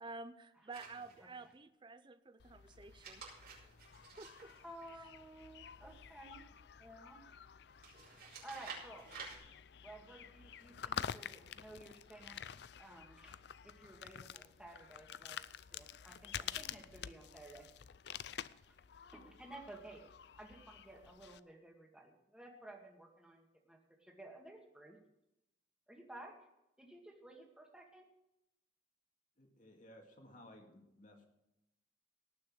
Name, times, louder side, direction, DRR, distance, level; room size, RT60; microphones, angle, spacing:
voice 1, 0.0-3.7 4.2-4.5, right 3 dB, 25° right, 11 dB, 0.5 m, -51 dB
sound 1, 0.7-1.5 2.8-5.4 7.8-9.4, right 5 dB, 60° right, 5.8 m, -52 dB
sound 2, 2.4-21.4, left 8 dB, 65° left, 0.4 m, -49 dB
voice 2, 4.6-6.5 6.8-7.2 8.4-9.1 9.8-12.4 12.8-13.4 13.6-15.4 15.7-17.7 18.7-18.8 19.1-20.0 20.4-25.0 25.9-26.3 26.8-28.1, right 1 dB, 5° right, 1 dB, 2.1 m, -54 dB
voice 3, 29.4-31.3, left 1 dB, 45° left, 3 dB, 2.2 m, -58 dB
18.5 x 6.4 x 6.1 m, 0.89 s
head